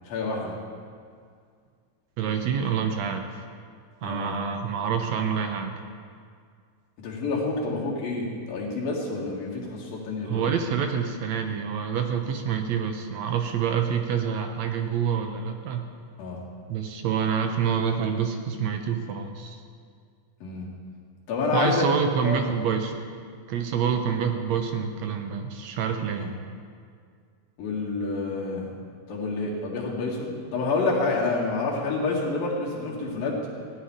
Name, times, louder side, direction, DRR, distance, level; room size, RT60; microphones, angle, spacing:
voice 1, 0.1-0.5 4.0-4.3 7.0-10.6 16.2-16.4 20.4-20.7 21.3-21.9 22.2-22.4 26.1-26.3 27.6-28.7 29.1-33.4, left 3 dB, 85° left, -3 dB, 3.9 m, -28 dB
voice 2, 2.2-3.3 4.0-5.7 10.2-15.9 16.7-19.6 21.5-22.9 23.5-26.3, right 7 dB, 75° right, 5 dB, 1.6 m, -27 dB
15.5 x 5.9 x 10.0 m, 2.1 s
omnidirectional pair, 4.0 m